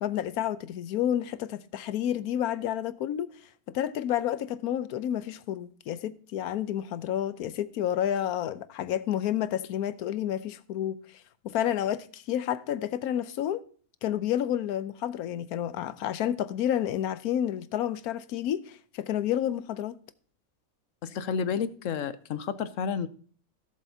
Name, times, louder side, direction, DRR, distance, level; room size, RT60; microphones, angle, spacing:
voice 1, 0.0-3.3 3.7-13.6 14.0-20.0, left 11 dB, 85° left, 1.2 m, -30 dB
voice 2, 21.0-23.1, left 6 dB, 65° left, 1.0 m, -31 dB
17.5 x 7.5 x 2.7 m
omnidirectional pair, 1.5 m